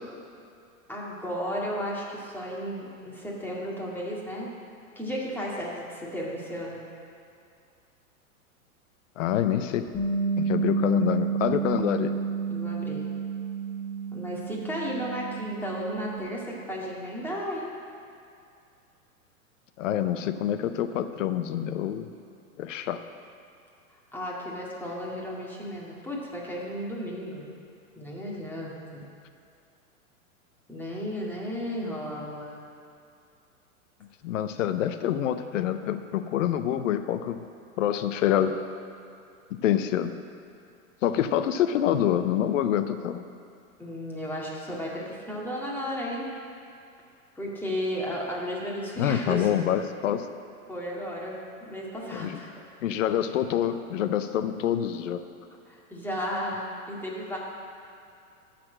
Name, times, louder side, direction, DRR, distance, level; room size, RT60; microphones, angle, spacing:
voice 1, 0.9-4.5 5.0-6.8 12.5-13.0 14.1-17.7 24.1-27.4 28.0-29.0 30.7-32.7 43.8-46.3 47.4-49.5 50.7-52.5 55.7-57.4, equal, 5° left, -5 dB, 2.0 m, -34 dB
voice 2, 9.2-9.9 10.4-12.1 19.8-22.1 22.6-23.0 34.2-37.4 37.8-38.5 39.6-40.1 41.0-43.2 49.0-50.3 52.1-52.4 52.8-55.2, left 10 dB, 60° left, 10 dB, 0.7 m, -26 dB
Bass guitar, 9.9-16.2, right 5 dB, 30° left, 1.8 m, -30 dB
13.0 x 4.3 x 7.5 m, 2.5 s
hypercardioid pair, 105°, 43 cm